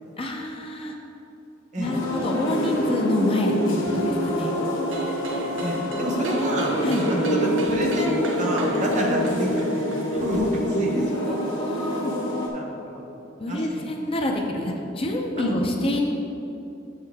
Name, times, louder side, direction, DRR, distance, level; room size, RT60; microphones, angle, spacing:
voice 1, 0.2-1.0 1.8-4.5 6.8-7.1 9.0-9.1 10.7-12.1 13.4-16.0, left 1 dB, 30° left, 1 dB, 0.5 m, -27 dB
sound 1, 1.8-12.5, equal, 75° left, 1.2 m, -26 dB
sound 2, 4.9-10.5, right 1 dB, 90° right, 0.6 m, -37 dB
voice 2, 5.6-6.7 7.1-9.8 10.1-11.4 12.5-13.9 15.4-15.6, equal, 40° right, 0 dB, 0.9 m, -28 dB
7.3 x 5.7 x 3.5 m, 2.8 s
head